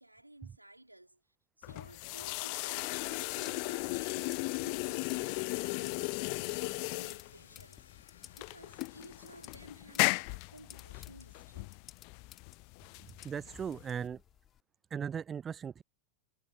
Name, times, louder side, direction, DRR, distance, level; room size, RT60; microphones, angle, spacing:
voice 1, 0.0-11.8, right 1 dB, 85° right, 3.0 m, -56 dB
sound 1, 1.6-14.1, left 40 dB or more, 45° left, 0.3 m, -36 dB
sound 2, 2.6-9.6, left 7 dB, 70° left, 1.7 m, -61 dB
sound 3, 5.0-14.6, left 10 dB, 30° left, 2.9 m, -58 dB
voice 2, 13.2-14.2 14.9-15.8, right 7 dB, 20° right, 0.5 m, -38 dB
figure-of-eight pair, 90°, 0 cm